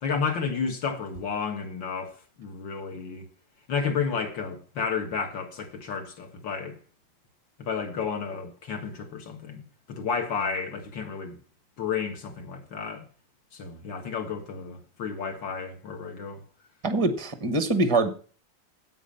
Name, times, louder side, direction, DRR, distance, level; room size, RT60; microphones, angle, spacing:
voice 1, 0.0-3.3 3.7-6.8 7.6-9.6 9.9-11.4 11.8-13.1 13.5-16.4, left 5 dB, 65° left, 2.3 m, -32 dB
voice 2, 16.8-18.1, right 2 dB, 30° right, 0.5 m, -24 dB
9.2 x 8.3 x 5.5 m
omnidirectional pair, 2.2 m